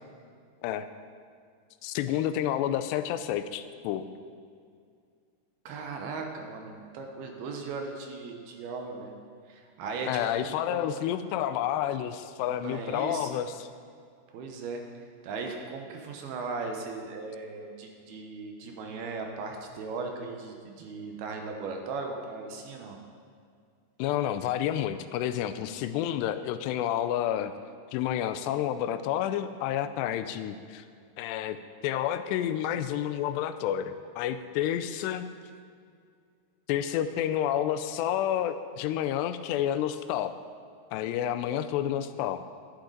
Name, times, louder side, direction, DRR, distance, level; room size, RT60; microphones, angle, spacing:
voice 1, 1.8-4.1 10.1-13.7 24.0-27.5 27.9-30.8 31.2-31.6 31.8-35.3 36.7-40.4 40.9-42.4, left 11 dB, 90° left, 11 dB, 2.7 m, -29 dB
voice 2, 5.7-9.1 9.5-10.1 10.4-10.9 12.5-13.4 14.3-14.8 15.2-23.0, right 4 dB, 75° right, 3 dB, 2.8 m, -37 dB
11.5 x 11.5 x 3.9 m, 2.2 s
omnidirectional pair, 4.8 m